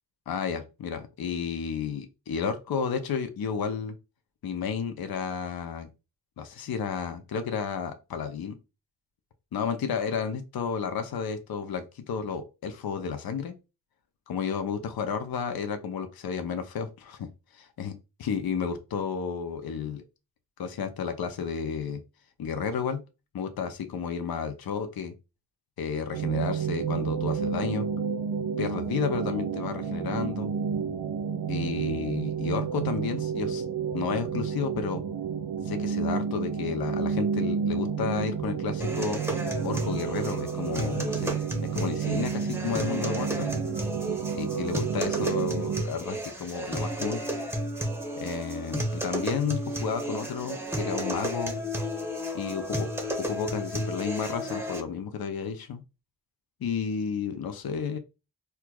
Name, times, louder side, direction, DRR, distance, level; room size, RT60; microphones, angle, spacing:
voice 1, 0.3-4.0 4.4-5.9 6.4-8.5 9.5-13.5 14.3-17.3 17.5-20.0 20.6-22.0 22.4-23.0 23.3-25.1 25.8-27.9 28.6-30.5 31.5-33.6 33.9-35.0 35.6-39.2 39.6-41.3 41.7-43.5 44.3-47.2 48.2-51.6 52.3-52.9 53.2-55.8 56.6-58.0, left 6 dB, 65° left, 8 dB, 0.6 m, -32 dB
sound 1, 26.1-45.8, right 7 dB, 70° right, 0.6 m, -30 dB
sound 2, 38.8-54.8, equal, 5° right, 0.8 m, -33 dB
4.4 x 2.3 x 2.3 m, 0.28 s
cardioid pair, 45°, 40 cm